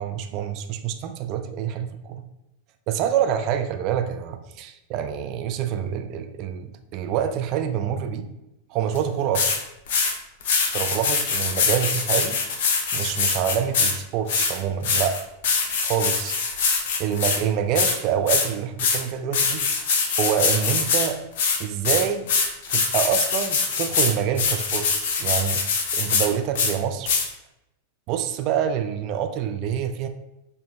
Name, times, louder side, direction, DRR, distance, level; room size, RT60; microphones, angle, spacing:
voice 1, 0.0-2.2 2.9-8.3 8.7-9.5 10.7-12.4 12.9-15.2 15.8-16.4 17.0-21.2 21.6-22.3 22.7-25.6 25.9-27.2 28.1-30.1, right 8 dB, 40° right, 7 dB, 0.3 m, -26 dB
sound 1, 8.9-9.0 9.3-9.6 9.9-10.1 10.4-13.9 14.3-17.4 17.7-17.9 18.3-18.5 18.8-19.0 19.3-21.1 21.4-26.3 26.5-26.7 27.1-27.2, left 5 dB, 55° left, 0.5 m, -23 dB
4.0 x 2.6 x 2.9 m, 0.90 s
figure-of-eight pair, 90°, 0 cm